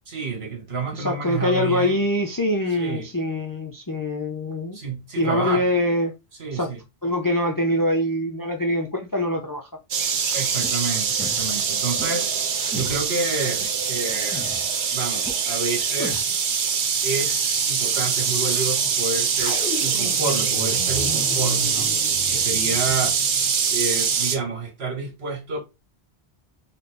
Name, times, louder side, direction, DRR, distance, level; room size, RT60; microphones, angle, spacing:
voice 1, 0.1-2.0 2.8-3.1 4.7-5.7 6.4-6.8 10.3-12.3 12.7-14.5 14.9-16.4 17.0-21.9 22.3-23.2 23.7-25.6, right 4 dB, 65° right, 1.8 m, -29 dB
voice 2, 0.9-4.8 5.2-6.1 6.5-6.7 7.0-9.7, left 1 dB, 25° left, 0.5 m, -24 dB
sound 1, 9.9-24.4, right 6 dB, 90° right, 1.1 m, -23 dB
sound 2, 10.6-10.7 11.2-11.5 12.0-12.1 12.7-13.0 13.6-13.7 14.3-14.7 15.2-15.3 16.0-16.4, equal, 5° left, 0.9 m, -35 dB
sound 3, 19.3-23.6, equal, 50° left, 1.6 m, -33 dB
4.2 x 3.4 x 3.3 m
omnidirectional pair, 1.1 m